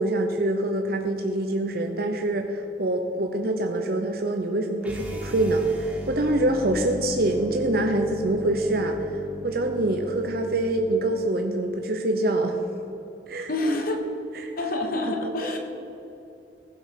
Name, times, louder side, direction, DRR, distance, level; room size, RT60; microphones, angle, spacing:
voice 1, 0.0-12.7 13.3-13.5 14.3-14.5 15.2-15.3, right 1 dB, 60° right, 4 dB, 0.7 m, -25 dB
sound 1, 4.8-11.0, equal, 10° right, 1.8 m, -38 dB
voice 2, 13.5-14.0 14.6-15.6, left 2 dB, 55° left, 3 dB, 1.4 m, -27 dB
15.5 x 5.3 x 6.5 m, 3.0 s
head